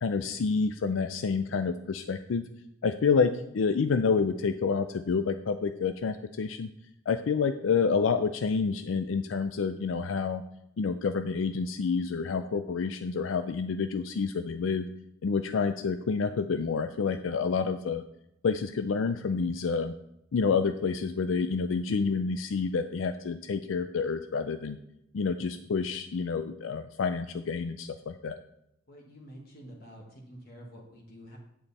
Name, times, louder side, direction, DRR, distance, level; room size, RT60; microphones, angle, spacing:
voice 1, 0.0-2.5 2.8-6.7 7.1-10.4 10.8-14.9 15.2-18.0 18.4-19.9 20.3-24.8 25.1-28.4, left 5 dB, 90° left, 9 dB, 0.4 m, -28 dB
voice 2, 28.9-31.4, equal, 55° left, -2 dB, 1.7 m, -48 dB
9.0 x 7.9 x 4.2 m, 0.83 s
head